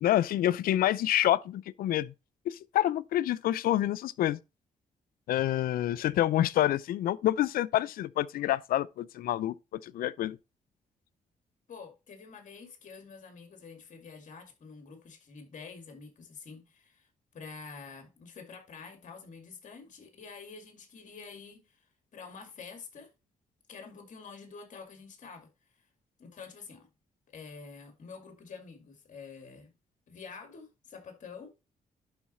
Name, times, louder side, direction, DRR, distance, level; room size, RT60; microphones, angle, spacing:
voice 1, 0.0-2.1 2.5-4.4 5.3-10.4, left 13 dB, 80° left, 0.4 m, -27 dB
voice 2, 11.7-17.1 17.3-23.1 23.7-25.5 26.2-26.9 27.3-29.7 30.1-31.5, left 5 dB, 60° left, 2.2 m, -48 dB
11.0 x 4.0 x 4.2 m
cardioid pair, 90°, 15 cm